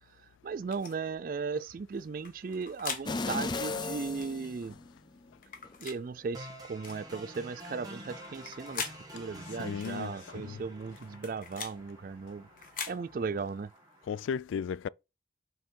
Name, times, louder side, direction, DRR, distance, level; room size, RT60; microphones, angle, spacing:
voice 1, 0.1-4.7 5.8-12.5 12.9-13.7, right 5 dB, 45° right, 0.3 m, -37 dB
sound 1, 0.7-0.9 2.2-3.1 4.1-4.3 5.4-6.0 6.8-7.0 8.2-9.0 9.8-10.0 11.0-11.8 12.6-13.0, left 6 dB, 45° left, 1.3 m, -40 dB
sound 2, 3.1-5.2 5.6-5.8, left 3 dB, 25° left, 0.5 m, -35 dB
sound 3, 6.3-14.3, equal, 20° right, 1.8 m, -49 dB
voice 2, 9.6-10.6 14.1-14.9, left 7 dB, 85° left, 0.3 m, -35 dB
6.4 x 4.4 x 4.5 m
head